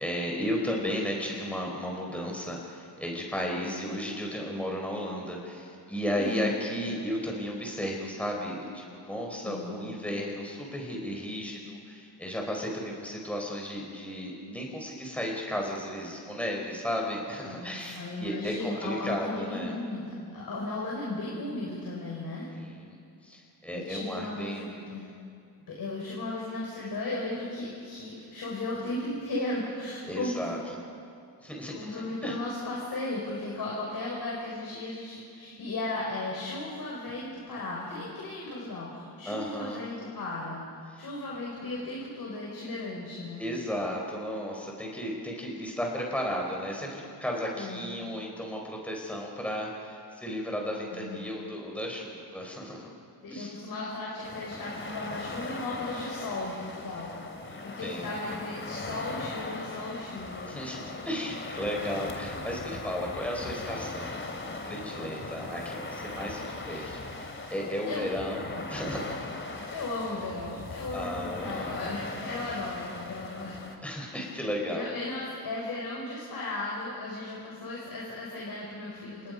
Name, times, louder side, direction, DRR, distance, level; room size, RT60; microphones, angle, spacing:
voice 1, 0.0-19.7 22.5-22.9 23.2-25.0 30.1-30.6 31.4-32.4 39.2-39.8 40.9-41.0 43.4-52.9 53.3-53.6 57.5-58.1 60.5-69.1 70.9-71.7 72.5-72.6 73.8-74.9, equal, 5° left, -1 dB, 4.7 m, -34 dB
voice 2, 3.6-3.9 6.1-6.6 9.4-9.7 17.4-22.5 23.7-25.1 25.7-30.5 31.7-40.6 41.0-43.4 47.5-47.9 50.9-51.2 53.2-57.1 57.6-60.5 67.9-68.1 68.5-68.7 69.5-73.6 74.0-74.3 74.7-79.3, left 2 dB, 55° left, -4 dB, 6.0 m, -36 dB
sound 1, 54.2-73.8, left 2 dB, 30° left, 2.8 m, -39 dB
29.0 x 26.5 x 5.4 m, 2.4 s
cardioid pair, 95°, 42 cm